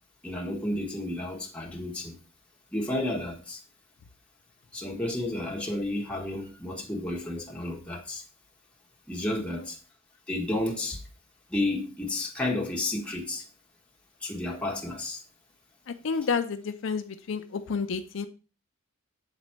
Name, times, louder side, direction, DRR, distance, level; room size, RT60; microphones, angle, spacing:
voice 1, 0.2-2.2 2.7-3.6 4.7-8.2 9.1-9.8 10.3-11.0 11.5-13.4 14.2-15.2, left 1 dB, 5° left, 1.4 m, -31 dB
voice 2, 9.3-9.7 15.9-18.3, left 5 dB, 65° left, 0.5 m, -31 dB
7.7 x 4.1 x 4.5 m
head